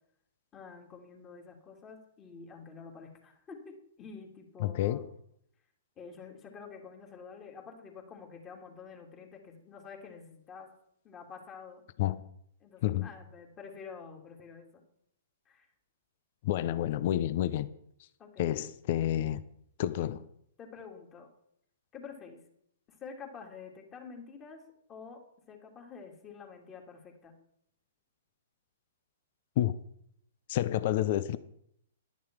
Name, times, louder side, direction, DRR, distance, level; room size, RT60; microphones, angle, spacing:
voice 1, 0.5-5.0 6.0-10.7 11.0-11.8 12.6-14.8 15.5-15.7 18.2-18.6 20.6-21.3 21.9-22.4 23.0-24.6 24.9-25.2 25.5-27.4, left 5 dB, 25° left, 2.9 m, -48 dB
voice 2, 4.6-5.1 12.0-12.2 12.8-13.1 16.4-17.7 18.4-19.4 19.8-20.2 29.6-29.7 30.5-31.4, left 12 dB, 50° left, 0.7 m, -29 dB
11.5 x 10.5 x 4.7 m
figure-of-eight pair, 115°, 0 cm